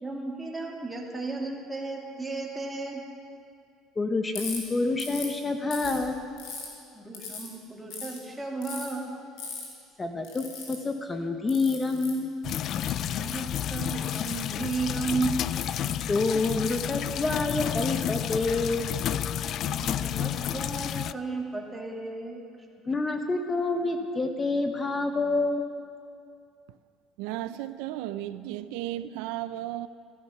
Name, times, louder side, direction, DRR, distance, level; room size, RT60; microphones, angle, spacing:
voice 1, 0.0-3.0 6.9-9.1 13.0-15.4 19.5-22.4, right 3 dB, 10° right, 2.3 m, -34 dB
voice 2, 4.0-6.2 10.0-12.3 16.1-18.9 22.9-25.7, left 3 dB, 20° left, 1.0 m, -28 dB
Ratchet pawl, 4.3-4.6 5.0-5.3 5.7-6.7 7.1-7.5 7.9-8.2 8.6-8.9 9.4-9.6 10.2-10.7 11.5-12.1 12.7-13.5 14.0-14.7 15.5-15.8 16.6-16.8 17.6-19.1, left 5 dB, 75° left, 4.7 m, -39 dB
sound 1, 12.4-21.1, left 10 dB, 50° left, 0.3 m, -31 dB
voice 3, 27.2-29.9, right 14 dB, 85° right, 0.4 m, -34 dB
14.5 x 14.0 x 5.7 m
cardioid pair, 120°, 0 cm